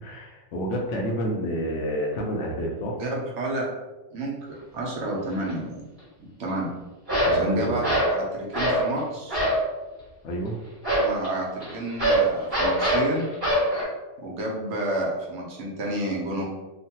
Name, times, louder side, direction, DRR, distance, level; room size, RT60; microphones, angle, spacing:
voice 1, 0.0-3.0 7.3-7.8 10.2-10.6, equal, 70° left, 0 dB, 0.9 m, -29 dB
voice 2, 3.0-3.7 4.1-5.8 6.4-6.7 7.3-7.9 8.1-9.4 11.0-13.3 14.2-16.4, right 1 dB, 70° right, -3 dB, 1.0 m, -30 dB
sound 1, 5.3-5.5 7.1-7.4 7.8-8.2 8.5-8.9 9.3-9.7 10.8-13.8, right 1 dB, 20° right, 1.2 m, -23 dB
3.0 x 2.2 x 2.8 m, 1.1 s
omnidirectional pair, 1.3 m